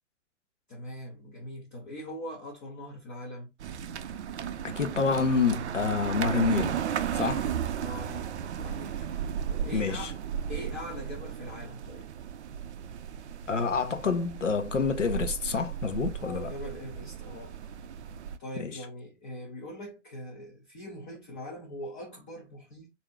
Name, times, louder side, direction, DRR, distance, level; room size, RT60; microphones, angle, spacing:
voice 1, 0.7-3.5 7.6-10.2 10.5-12.1 16.2-17.8 18.4-22.9, left 1 dB, 10° left, 0.3 m, -42 dB
sound 1, 3.6-18.4, right 9 dB, 65° right, 0.5 m, -35 dB
voice 2, 4.6-6.8 7.1-7.5 9.6-10.1 13.5-16.5 18.6-18.8, left 5 dB, 85° left, 0.7 m, -28 dB
3.6 x 2.6 x 3.4 m
figure-of-eight pair, 110°, 36 cm